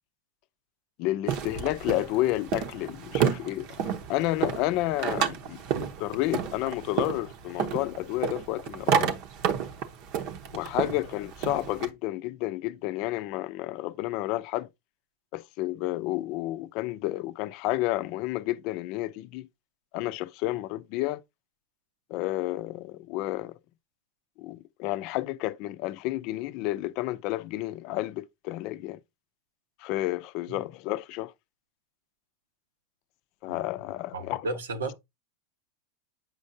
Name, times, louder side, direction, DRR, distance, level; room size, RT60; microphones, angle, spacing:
voice 1, 1.0-9.1 10.5-14.7 15.3-19.5 19.9-21.2 22.1-23.5 24.4-29.0 29.8-31.3 33.4-34.5, left 16 dB, 55° left, 0.5 m, -31 dB
sound 1, 1.3-11.9, right 8 dB, 55° right, 0.9 m, -30 dB
voice 2, 34.1-34.9, right 2 dB, 85° right, 1.0 m, -34 dB
7.9 x 5.3 x 2.7 m
hypercardioid pair, 95°, 0 cm